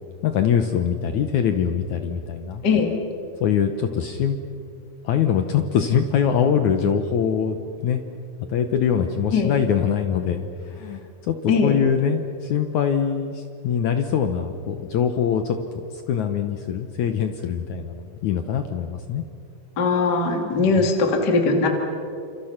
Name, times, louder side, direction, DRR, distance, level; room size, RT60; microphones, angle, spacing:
voice 1, 0.2-2.6 3.4-4.4 5.0-8.0 8.5-15.6 15.9-19.2 20.8-20.9, left 8 dB, 70° left, 7 dB, 1.9 m, -23 dB
voice 2, 19.8-21.7, left 4 dB, 30° left, 3 dB, 2.5 m, -20 dB
28.5 x 27.5 x 5.9 m, 2.6 s
omnidirectional pair, 4.4 m